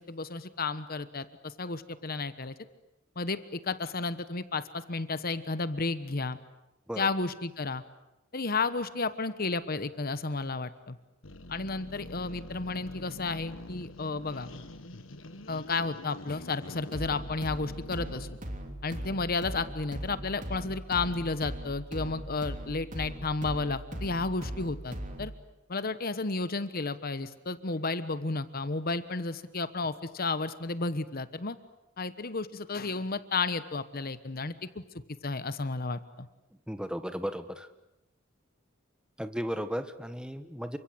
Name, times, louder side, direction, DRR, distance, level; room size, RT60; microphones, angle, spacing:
voice 1, 0.0-2.5 3.2-6.4 7.0-7.8 8.3-11.0 11.5-14.5 15.5-18.3 18.8-25.3 25.7-31.6 32.0-34.8 35.2-36.3, left 3 dB, 50° left, 13 dB, 1.2 m, -32 dB
sound 1, 11.2-18.4, left 1 dB, 80° left, 1.6 m, -45 dB
sound 2, 16.9-25.4, right 1 dB, 40° right, 3.3 m, -39 dB
voice 2, 36.7-37.7 39.2-40.8, equal, 5° right, 10 dB, 1.5 m, -35 dB
29.0 x 25.0 x 8.0 m, 0.93 s
head